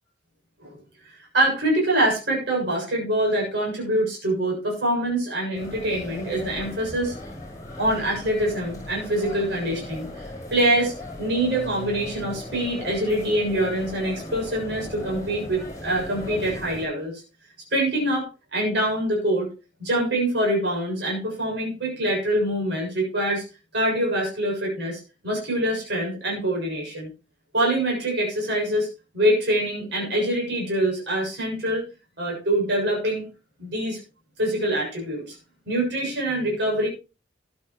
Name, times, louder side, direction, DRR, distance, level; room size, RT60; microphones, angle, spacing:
voice 1, 1.0-7.1 7.8-10.3 10.5-17.2 17.7-19.5 19.8-23.4 23.7-27.1 27.5-28.9 29.1-31.9 32.2-33.3 33.6-34.0 34.4-35.4 35.7-36.9, right 1 dB, 65° right, -2 dB, 7.1 m, -25 dB
sound 1, 5.5-16.9, left 1 dB, 20° left, 5.4 m, -37 dB
14.0 x 11.5 x 3.1 m, 0.30 s
head